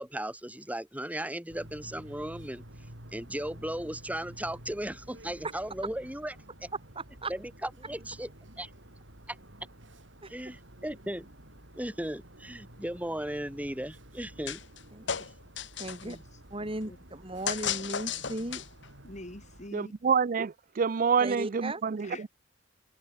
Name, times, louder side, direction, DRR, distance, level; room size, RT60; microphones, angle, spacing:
voice 1, 0.0-2.6 3.1-6.3 6.6-6.7 7.3-8.3 8.6-8.7 9.3-9.4 10.3-11.3 11.8-14.6, right 1 dB, 10° right, 6.1 m, -36 dB
sound 1, 1.5-19.7, right 1 dB, 70° right, 7.2 m, -51 dB
voice 2, 6.9-7.3 10.2-10.3 14.9-15.1 15.8-16.2 16.5-18.6 21.2-21.8, right 1 dB, 30° right, 6.6 m, -36 dB
sound 2, 14.5-14.8 15.1-16.1 17.5-18.9, left 8 dB, 70° left, 1.8 m, -34 dB
voice 3, 16.0-17.0 19.0-19.9 22.0-22.2, left 1 dB, 40° left, 5.7 m, -46 dB
voice 4, 19.7-22.3, right 6 dB, 45° right, 0.5 m, -27 dB
head